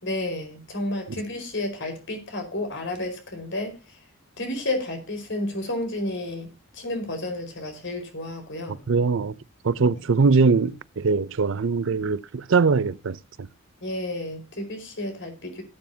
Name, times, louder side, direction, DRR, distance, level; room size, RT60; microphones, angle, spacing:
voice 1, 0.0-4.0 4.4-8.8 9.8-9.9 13.8-15.6, left 1 dB, 60° left, 4.8 m, -31 dB
voice 2, 8.9-9.3 9.6-13.2, right 4 dB, 60° right, 0.5 m, -21 dB
18.0 x 9.3 x 2.8 m
head